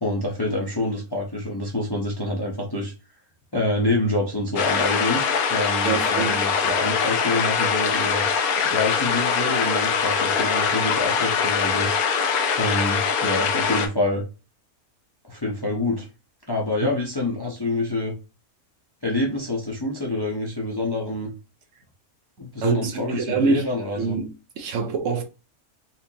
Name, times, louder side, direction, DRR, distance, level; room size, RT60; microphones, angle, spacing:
voice 1, 0.0-2.9 3.5-5.2 5.5-8.3 8.7-11.9 12.6-14.2 15.3-16.1 16.5-18.1 19.0-21.3 22.4-24.2, left 2 dB, 25° left, 0.6 m, -26 dB
sound 1, 4.6-13.9, left 6 dB, 80° left, 1.2 m, -23 dB
voice 2, 5.8-6.4 8.6-8.7 16.8-16.9 22.6-23.6 24.0-24.3 24.6-25.2, right 5 dB, 65° right, 0.9 m, -25 dB
4.2 x 2.6 x 2.8 m
omnidirectional pair, 1.5 m